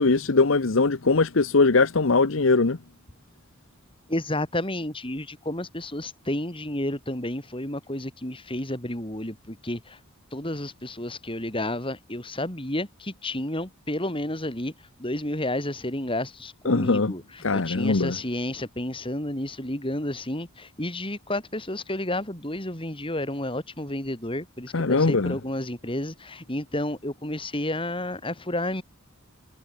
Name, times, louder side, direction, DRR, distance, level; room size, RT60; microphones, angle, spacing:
voice 1, 0.0-2.8 16.7-17.1 17.4-18.2 24.7-25.3, left 3 dB, 70° left, 0.9 m, -21 dB
voice 2, 4.1-10.0 10.3-14.7 15.0-28.8, left 1 dB, 25° left, 5.3 m, -31 dB
head